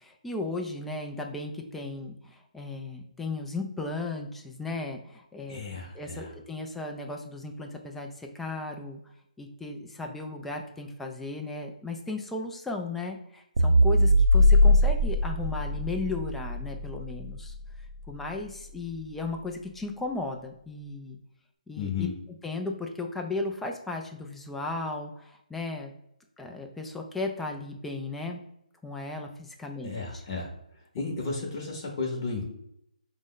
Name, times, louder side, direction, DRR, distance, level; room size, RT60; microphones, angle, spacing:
voice 1, 0.0-5.6 5.9-9.0 9.4-17.5 18.1-21.2 21.7-22.1 22.4-25.9 26.4-28.4 28.8-30.2, left 2 dB, 5° left, 2 dB, 0.3 m, -35 dB
voice 2, 5.4-6.3 21.8-22.1 29.8-30.5 30.9-32.5, left 4 dB, 35° left, -1 dB, 0.8 m, -33 dB
sound 1, 13.6-18.1, left 1 dB, 75° right, 0.4 m, -22 dB
4.9 x 2.1 x 3.7 m, 0.77 s
hypercardioid pair, 160°, 4 cm